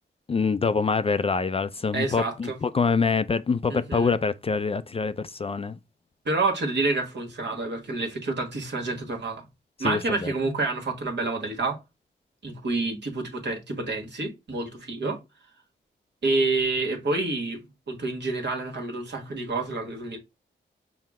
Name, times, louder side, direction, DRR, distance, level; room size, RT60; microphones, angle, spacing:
voice 1, 0.3-5.8 9.8-10.3, left 4 dB, 30° left, 0.3 m, -25 dB
voice 2, 1.9-2.6 3.7-4.1 6.2-9.4 9.8-11.8 12.4-15.2 16.2-17.6 17.9-20.2, right 3 dB, 60° right, 1.3 m, -28 dB
5.7 x 2.1 x 3.6 m
cardioid pair, 55°, 20 cm